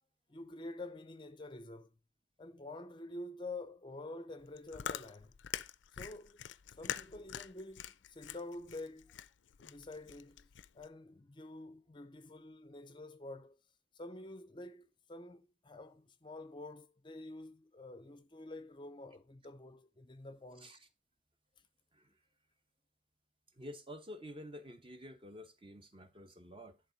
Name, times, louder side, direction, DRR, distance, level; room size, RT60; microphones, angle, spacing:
voice 1, 0.3-1.9 2.4-5.3 5.9-6.4 6.7-9.1 9.6-10.5 10.7-13.6 13.9-20.7, left 2 dB, 25° left, 0.5 m, -48 dB
Chewing mastication, 4.4-10.9, left 9 dB, 80° left, 0.5 m, -45 dB
voice 2, 23.5-26.8, equal, 30° right, 0.9 m, -50 dB
11.0 x 3.7 x 5.2 m
head